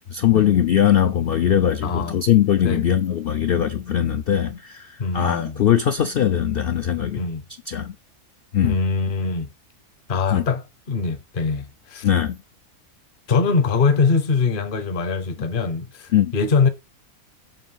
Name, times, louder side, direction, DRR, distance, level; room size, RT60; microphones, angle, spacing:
voice 1, 0.1-7.2 7.7-7.9 8.5-8.8 10.3-10.4 12.0-12.4 16.1-16.3, left 10 dB, 80° left, 0.5 m, -20 dB
voice 2, 1.8-2.2 2.6-2.8 5.0-5.6 7.2-7.4 8.6-9.5 10.1-12.1 13.3-16.7, left 4 dB, 40° left, 0.9 m, -22 dB
7.1 x 3.0 x 5.6 m
omnidirectional pair, 1.6 m